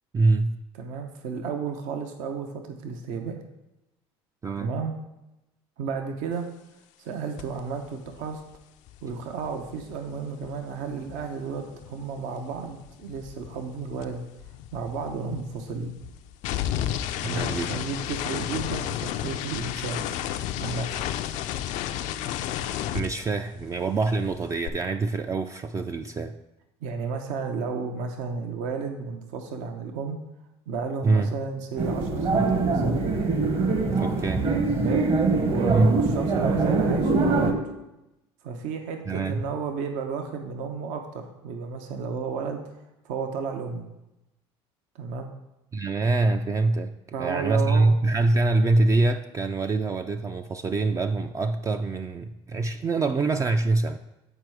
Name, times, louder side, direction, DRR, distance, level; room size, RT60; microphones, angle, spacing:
voice 1, 0.1-0.6 4.4-4.8 17.2-17.8 22.9-26.4 31.0-31.3 34.0-34.5 35.7-36.0 39.1-39.4 45.7-46.9 47.2-54.0, right 3 dB, 25° right, 7 dB, 0.4 m, -24 dB
voice 2, 0.8-3.4 4.6-4.9 5.8-6.5 7.0-8.4 9.0-14.2 14.7-15.9 17.2-20.0 20.6-20.9 26.8-30.2 30.7-33.3 34.8-35.1 35.5-37.7 38.4-42.6 43.0-43.9 44.9-45.3 47.1-47.9, right 5 dB, 70° right, 5 dB, 0.8 m, -33 dB
sound 1, 7.4-7.6 7.9-12.2 12.5-23.8 24.0-24.7, left 11 dB, 65° left, 0.4 m, -33 dB
sound 2, 31.8-37.5, right 3 dB, 45° right, 1.1 m, -23 dB
8.1 x 4.5 x 4.6 m, 0.94 s
hypercardioid pair, 75°, 13 cm